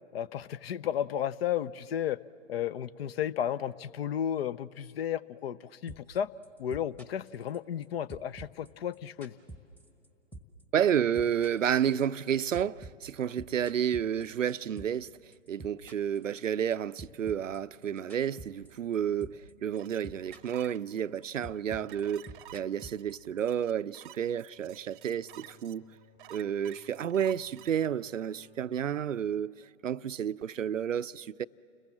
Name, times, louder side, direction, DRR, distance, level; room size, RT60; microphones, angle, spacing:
voice 1, 0.1-2.2 2.5-6.3 6.6-9.3, left 10 dB, 55° left, 0.7 m, -33 dB
sound 1, 5.9-6.2 6.4-7.8 8.1-10.1 10.3-10.6 10.9-15.1 15.3-16.7 17.0-18.9 19.2-19.5 19.8-20.6 20.9-23.5, right 2 dB, 5° left, 1.2 m, -47 dB
voice 2, 10.7-15.1 15.5-25.9 26.3-31.5, right 9 dB, 90° right, 0.5 m, -31 dB
sound 2, 19.7-27.9, right 13 dB, 45° right, 0.7 m, -52 dB
Bowed string instrument, 24.5-29.7, left 8 dB, 30° left, 4.8 m, -63 dB
30.0 x 21.0 x 7.4 m
figure-of-eight pair, 120°, 37 cm